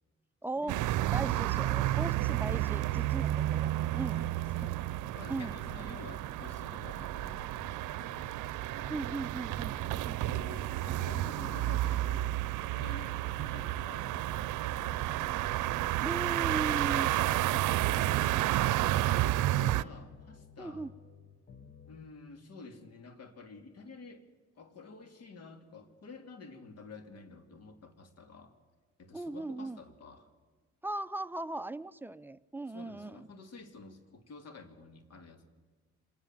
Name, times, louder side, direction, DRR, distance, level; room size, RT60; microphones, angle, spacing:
voice 1, 0.4-0.8 1.1-4.2 5.3-5.6 8.9-10.2 16.0-17.1 20.6-20.9 29.1-29.8 30.8-33.3, right 2 dB, 5° right, 12 dB, 0.6 m, -38 dB
sound 1, 0.7-19.8, right 15 dB, 85° right, 0.6 m, -31 dB
sound 2, 2.4-22.1, left 6 dB, 35° left, 1.5 m, -55 dB
voice 2, 4.1-8.4 9.4-9.5 9.9-12.4 12.6-15.4 16.6-17.2 17.4-19.0 19.4-20.9 21.9-24.2 24.5-28.5 29.0-30.3 32.7-35.4, left 3 dB, 55° left, 8 dB, 2.9 m, -51 dB
26.0 x 19.0 x 7.5 m, 1.4 s
cardioid pair, 90°, 30 cm